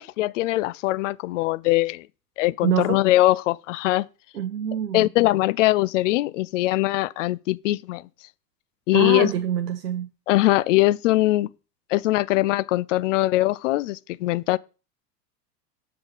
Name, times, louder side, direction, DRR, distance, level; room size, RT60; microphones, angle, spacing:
voice 1, 0.0-2.1 2.4-4.1 4.9-8.0 8.9-9.3 10.3-11.5 11.9-14.6, left 17 dB, 55° left, 0.5 m, -21 dB
voice 2, 2.6-3.0 4.3-5.1 8.9-10.1, right 9 dB, 80° right, 0.8 m, -25 dB
7.6 x 6.3 x 4.0 m
figure-of-eight pair, 80°, 47 cm